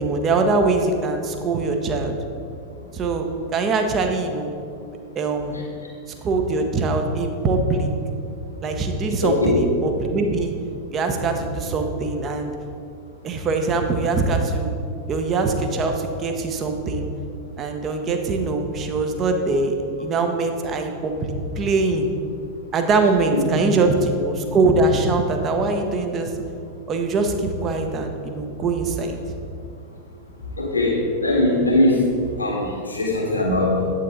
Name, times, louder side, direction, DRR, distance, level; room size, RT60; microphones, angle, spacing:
voice 1, 0.0-2.1 2.9-3.3 3.5-4.5 5.1-5.6 6.2-7.9 8.6-10.5 10.9-12.5 13.2-14.7 15.1-17.1 17.6-22.1 22.7-26.4 26.9-29.2, right 3 dB, 30° right, 5 dB, 1.0 m, -22 dB
voice 2, 9.2-9.7 30.6-32.1 32.4-33.8, left 1 dB, 80° left, -2 dB, 1.9 m, -20 dB
9.6 x 8.5 x 3.9 m, 2.5 s
figure-of-eight pair, 90°, 0 cm